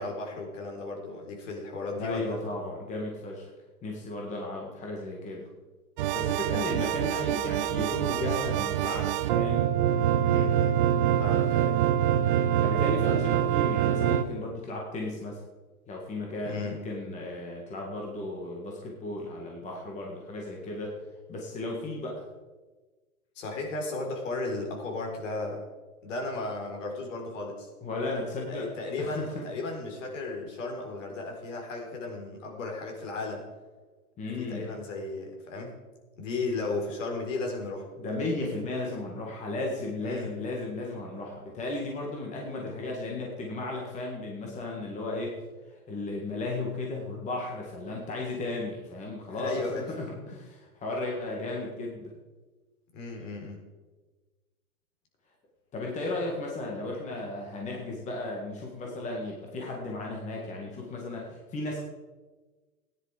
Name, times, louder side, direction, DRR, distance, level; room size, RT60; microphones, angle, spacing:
voice 1, 0.0-2.4 10.2-10.8 11.2-11.9 16.4-16.8 23.4-25.6 26.0-27.7 28.5-33.4 34.4-35.8 36.2-37.9 40.0-40.3 49.3-49.8 52.9-53.6, left 3 dB, 55° left, 1 dB, 4.2 m, -35 dB
voice 2, 2.0-3.5 3.8-5.5 6.1-9.7 11.3-11.4 12.6-15.4 15.9-21.0 21.3-22.2 27.8-28.7 29.0-29.4 34.2-34.7 38.0-45.4 45.7-52.1 55.7-61.8, left 2 dB, 15° left, -1 dB, 1.9 m, -35 dB
sound 1, 6.0-14.2, right 11 dB, 35° right, 0.7 m, -25 dB
15.0 x 10.5 x 5.0 m, 1.3 s
hypercardioid pair, 140°, 44 cm